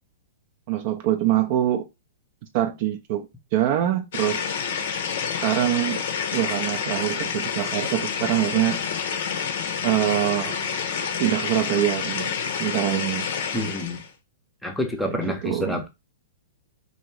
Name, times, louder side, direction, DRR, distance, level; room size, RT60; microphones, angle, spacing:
voice 1, 0.7-1.9 2.5-4.4 5.4-6.0 6.3-8.8 9.8-10.7 11.2-12.3 12.6-13.3 15.0-15.8, right 12 dB, 50° right, 0.4 m, -24 dB
sound 1, 4.1-14.1, left 6 dB, 60° left, 0.5 m, -28 dB
voice 2, 13.5-14.0 14.6-15.9, left 1 dB, 5° left, 0.6 m, -28 dB
2.6 x 2.1 x 3.0 m
hypercardioid pair, 115°, 0 cm